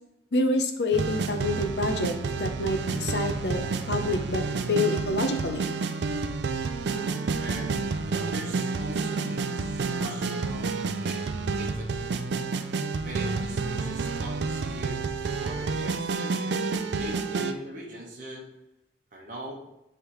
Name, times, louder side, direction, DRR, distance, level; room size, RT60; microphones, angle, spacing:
voice 1, 0.3-4.4 4.7-5.7, left 2 dB, 70° left, 6 dB, 0.7 m, -27 dB
sound 1, 0.9-17.5, right 4 dB, 75° right, 0.4 m, -29 dB
voice 2, 6.9-7.8 8.1-10.7 11.0-11.2 11.6-12.0 13.0-18.5 19.1-19.5, right 1 dB, 45° right, -2 dB, 1.1 m, -41 dB
9.2 x 3.4 x 3.1 m, 0.88 s
head